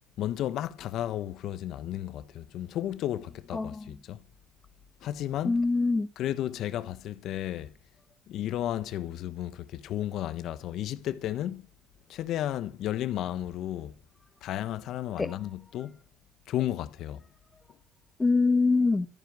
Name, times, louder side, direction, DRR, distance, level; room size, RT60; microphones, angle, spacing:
voice 1, 0.2-4.2 5.0-5.6 6.2-7.7 8.3-11.6 12.1-13.9 14.4-16.0 16.5-17.2, left 12 dB, 70° left, 1.3 m, -33 dB
voice 2, 3.5-3.9 5.4-6.1 15.2-15.3 18.2-19.1, left 3 dB, 20° left, 1.7 m, -24 dB
13.5 x 11.5 x 6.4 m
supercardioid pair, 70°, 0 cm